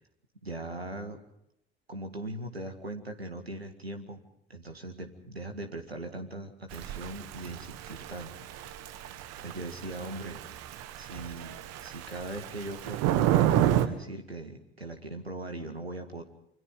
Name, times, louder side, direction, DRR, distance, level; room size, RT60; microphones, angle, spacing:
voice 1, 0.4-1.2 1.9-4.2 4.5-8.3 9.4-10.4 11.0-11.5 11.8-16.2, right 2 dB, 90° right, 5 dB, 1.9 m, -40 dB
Thunder / Rain, 6.7-13.9, right 12 dB, 55° right, 1.7 m, -30 dB
27.5 x 25.5 x 3.8 m, 0.73 s
figure-of-eight pair, 55°, 30 cm